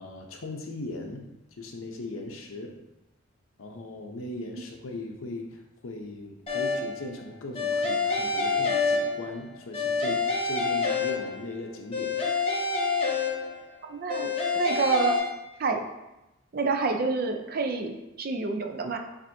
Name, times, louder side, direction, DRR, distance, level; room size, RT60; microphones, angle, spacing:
voice 1, 0.0-2.7 3.6-12.1, left 2 dB, 80° left, 3 dB, 0.7 m, -39 dB
sound 1, 6.5-7.0 7.6-9.4 9.7-11.5 11.9-13.7 14.1-15.2, left 4 dB, 30° left, 0.8 m, -27 dB
voice 2, 13.9-14.3 14.5-15.2 15.6-15.8 16.5-19.0, right 4 dB, 45° right, 4 dB, 0.5 m, -27 dB
7.3 x 2.7 x 2.7 m, 0.96 s
head